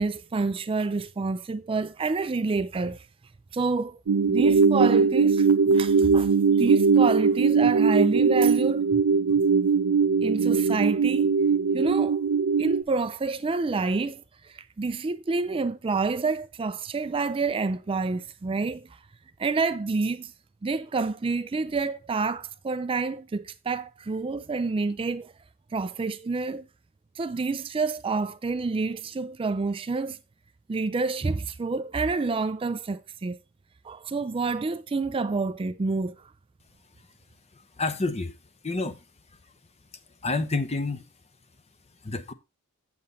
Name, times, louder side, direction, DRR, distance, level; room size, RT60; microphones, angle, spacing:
voice 1, 0.0-3.1 3.5-4.0 4.3-9.0 9.3-9.4 10.2-11.3 11.7-12.2 12.6-18.9 19.4-20.3 20.6-25.3 25.7-26.7 27.2-30.2 30.7-33.4 33.8-36.2, right 4 dB, 25° right, 0.4 m, -28 dB
sound 1, 4.1-12.8, right 5 dB, 85° right, 0.5 m, -21 dB
voice 2, 37.8-38.3 38.6-39.0 40.2-41.0 42.0-42.3, left 3 dB, 30° left, 0.8 m, -28 dB
7.8 x 7.6 x 4.0 m
head